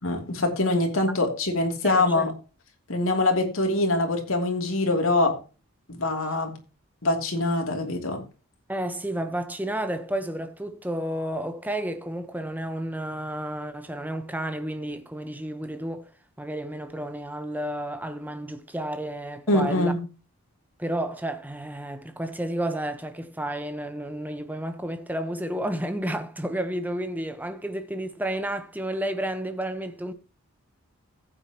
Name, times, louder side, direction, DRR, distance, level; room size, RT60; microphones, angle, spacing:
voice 1, 0.0-2.3 2.9-5.3 5.9-6.5 7.0-8.2 19.5-20.0, left 2 dB, 65° left, 3.0 m, -24 dB
voice 2, 1.8-2.3 8.7-16.1 16.4-19.9 20.8-30.1, right 1 dB, 10° right, 1.0 m, -31 dB
15.0 x 8.9 x 3.0 m
head